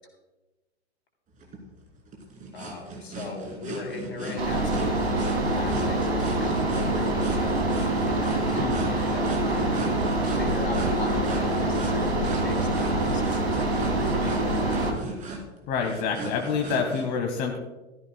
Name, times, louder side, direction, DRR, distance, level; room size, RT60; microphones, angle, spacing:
sound 1, 1.4-17.1, right 2 dB, 20° right, 2.6 m, -38 dB
voice 1, 2.5-9.8 10.3-14.8, left 3 dB, 65° left, 2 dB, 3.0 m, -39 dB
sound 2, 4.4-14.9, right 2 dB, 70° right, 2.7 m, -25 dB
voice 2, 8.6-8.9 15.7-17.6, left 6 dB, 30° left, 3 dB, 1.2 m, -27 dB
16.0 x 13.5 x 2.2 m, 1.1 s
figure-of-eight pair, 100°, 33 cm